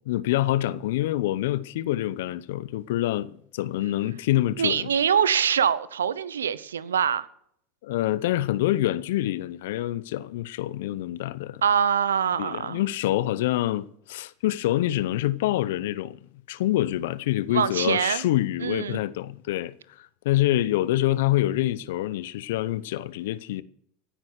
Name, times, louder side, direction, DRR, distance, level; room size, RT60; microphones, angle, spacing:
voice 1, 0.1-4.9 7.8-11.6 12.4-16.2 16.5-23.6, left 14 dB, 70° left, 0.8 m, -26 dB
voice 2, 4.6-7.3 11.6-12.8 17.5-18.2 18.6-19.0, right 8 dB, 85° right, 0.8 m, -24 dB
16.0 x 10.0 x 6.5 m
hypercardioid pair, 80°, 0 cm